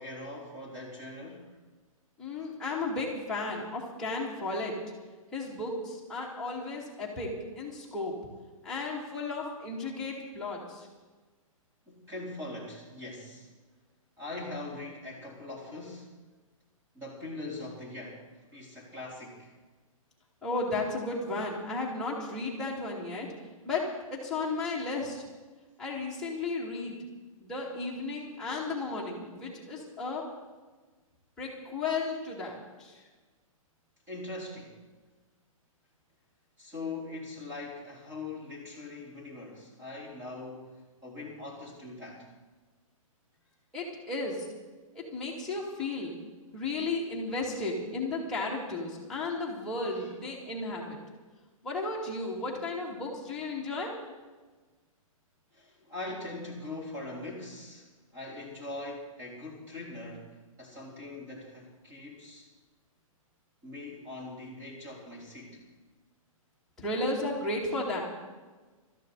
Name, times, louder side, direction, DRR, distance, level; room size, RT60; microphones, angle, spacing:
voice 1, 0.0-1.6 11.9-13.5 14.2-16.1 16.9-18.3 18.5-19.5 34.1-34.7 36.6-42.3 47.3-47.4 49.9-50.1 55.5-62.5 63.6-65.6, left 2 dB, 15° right, -4 dB, 4.1 m, -42 dB
voice 2, 2.2-4.7 5.3-8.2 8.6-10.9 20.4-23.3 23.6-25.2 25.8-27.0 27.4-30.2 31.4-33.0 43.7-44.4 44.9-46.2 46.5-51.0 51.6-53.9 66.8-68.0, left 3 dB, 5° left, -7 dB, 2.7 m, -34 dB
20.5 x 14.0 x 4.1 m, 1.3 s
hypercardioid pair, 170°, 18 cm